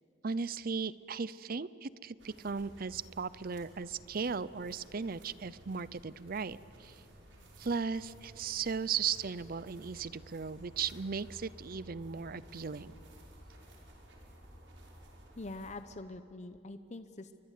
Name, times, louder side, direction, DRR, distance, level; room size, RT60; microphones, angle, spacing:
voice 1, 0.2-7.0 7.6-12.9, right 5 dB, 50° right, 18 dB, 0.6 m, -37 dB
sound 1, 2.2-15.8, equal, 70° right, 5.5 m, -55 dB
voice 2, 15.4-17.3, left 2 dB, 40° left, 10 dB, 0.8 m, -44 dB
30.0 x 23.5 x 8.4 m, 2.8 s
head